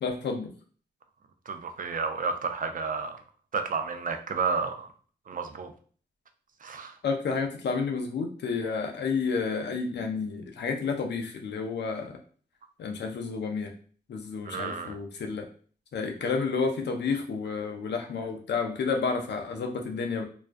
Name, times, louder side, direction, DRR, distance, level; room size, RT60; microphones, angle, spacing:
voice 1, 0.0-0.5 7.0-12.1 12.8-13.7 14.1-15.5 15.9-20.2, left 5 dB, 75° left, 3 dB, 0.5 m, -30 dB
voice 2, 1.5-3.2 3.5-4.9 5.3-5.7 6.6-7.0 14.4-15.0, right 5 dB, 50° right, 6 dB, 0.4 m, -31 dB
2.3 x 2.2 x 2.5 m, 0.44 s
cardioid pair, 50°, 18 cm